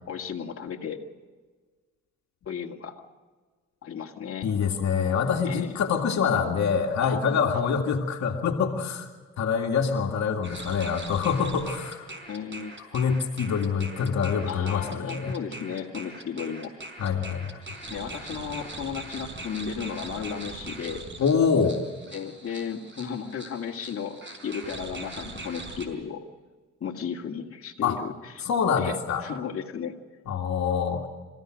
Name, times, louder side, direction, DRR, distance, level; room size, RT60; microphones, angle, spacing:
voice 1, 0.1-1.0 2.5-3.0 3.8-4.5 5.4-5.8 7.0-7.8 12.3-12.7 14.5-16.7 17.9-21.1 22.1-24.2 24.4-26.2 26.8-28.5 28.8-30.0, left 7 dB, 45° left, 0 dB, 2.2 m, -34 dB
voice 2, 4.4-9.1 9.4-12.1 12.9-15.4 17.0-17.5 21.2-21.8 27.8-28.0 28.5-29.2 30.3-31.1, left 6 dB, 65° left, 2 dB, 2.1 m, -25 dB
sound 1, 10.4-25.9, right 2 dB, 40° right, 4.7 m, -41 dB
27.0 x 16.0 x 6.4 m, 1.4 s
cardioid pair, 90°, 30 cm